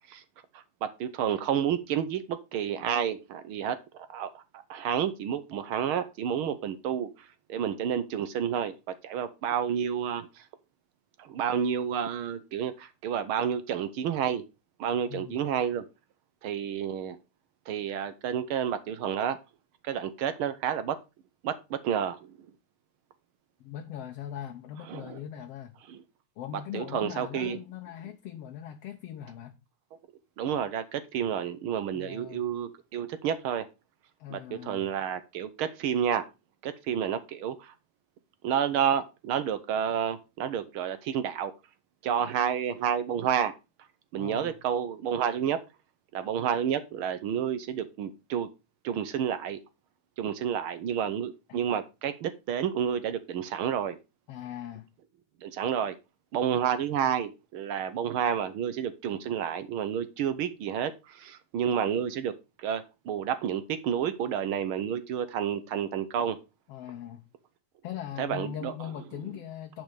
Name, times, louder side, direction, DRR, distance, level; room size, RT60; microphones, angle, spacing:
voice 1, 0.5-10.5 11.2-14.4 14.8-15.8 16.4-17.2 17.7-19.4 19.8-21.0 21.4-22.3 24.9-25.2 25.9-26.0 26.7-27.6 30.4-33.6 34.3-36.2 36.6-37.7 38.4-41.5 42.0-43.5 44.1-45.6 46.1-48.5 48.8-49.6 50.2-54.0 55.4-55.9 56.3-62.3 62.6-66.4 68.2-68.7, right 8 dB, 75° right, 1.2 m, -30 dB
voice 2, 15.1-15.4 23.6-25.8 26.4-29.6 31.9-32.4 34.2-34.8 44.2-44.6 51.5-51.6 54.3-54.9 66.7-67.2 67.8-69.8, left 10 dB, 70° left, 1.7 m, -40 dB
9.2 x 5.4 x 4.9 m
omnidirectional pair, 3.3 m